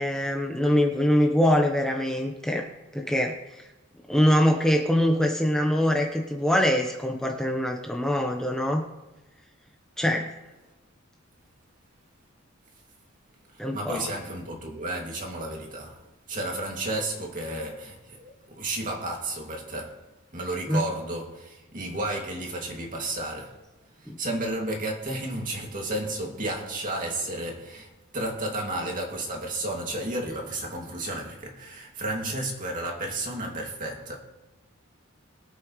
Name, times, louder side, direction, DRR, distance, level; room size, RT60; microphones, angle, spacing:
voice 1, 0.0-2.7 2.9-3.6 4.1-8.8 10.0-10.3 13.6-14.0 20.7-20.8 24.1-24.2, equal, 5° left, 1.0 m, -23 dB
voice 2, 13.5-23.7 23.9-34.2, right 1 dB, 40° right, 2.4 m, -32 dB
22.0 x 8.4 x 3.2 m
head